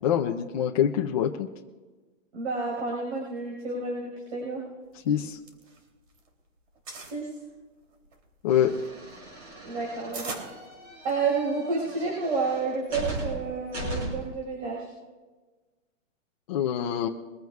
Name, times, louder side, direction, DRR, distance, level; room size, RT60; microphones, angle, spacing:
voice 1, 0.0-1.5 5.0-5.4 8.4-8.7 16.5-17.1, left 10 dB, 30° left, 0 dB, 0.6 m, -25 dB
voice 2, 2.3-4.6 7.1-7.3 9.6-10.4 11.0-14.9, right 4 dB, 60° right, -3 dB, 5.4 m, -30 dB
sound 1, 5.1-6.3 6.6-7.2 7.8-11.4, right 3 dB, 80° right, 3.1 m, -42 dB
sound 2, 8.5-14.4, right 2 dB, 35° right, 5.3 m, -38 dB
23.0 x 15.5 x 2.4 m, 1.3 s
hypercardioid pair, 165°, 38 cm